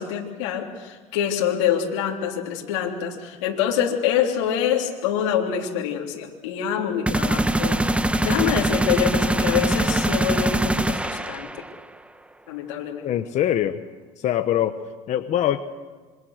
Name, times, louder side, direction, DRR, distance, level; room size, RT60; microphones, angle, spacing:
voice 1, 0.0-7.9 8.2-11.5 12.5-13.0, left 9 dB, 90° left, 0 dB, 3.4 m, -25 dB
sound 1, 7.1-11.8, right 1 dB, 10° right, 1.2 m, -22 dB
voice 2, 13.0-13.8 14.2-14.8 15.1-15.6, left 11 dB, 50° left, 9 dB, 1.2 m, -23 dB
27.0 x 24.0 x 6.6 m, 1.4 s
supercardioid pair, 105°, 15 cm